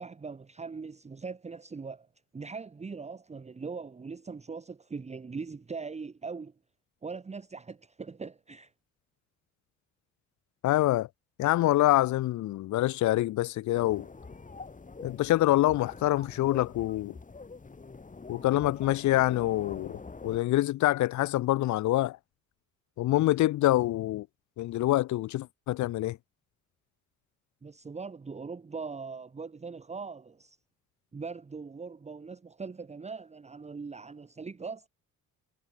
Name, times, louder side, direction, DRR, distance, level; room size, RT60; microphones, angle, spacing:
voice 1, 0.0-2.1 2.3-6.5 7.0-8.7 27.6-30.6 31.1-34.9, right 4 dB, 20° right, 1.0 m, -41 dB
voice 2, 10.6-11.1 11.4-14.1 15.0-17.1 18.3-22.2 23.0-24.3 24.6-26.2, left 15 dB, 70° left, 0.7 m, -26 dB
sound 1, 13.7-20.4, left 4 dB, 25° left, 4.6 m, -45 dB
cardioid pair, 90°, 30 cm